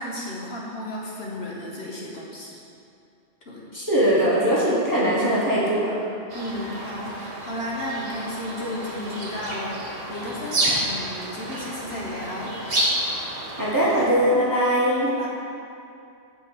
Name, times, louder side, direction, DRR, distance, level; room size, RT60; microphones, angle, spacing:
voice 1, 0.0-2.6 3.5-3.6 6.3-9.8 10.1-12.5 15.1-15.3, left 1 dB, 60° left, -4 dB, 1.3 m, -33 dB
voice 2, 3.7-6.0 13.6-15.1, equal, 15° right, -7 dB, 1.3 m, -21 dB
sound 1, 6.3-14.1, right 1 dB, 55° right, 1.4 m, -30 dB
8.6 x 4.4 x 6.9 m, 2.5 s
omnidirectional pair, 1.2 m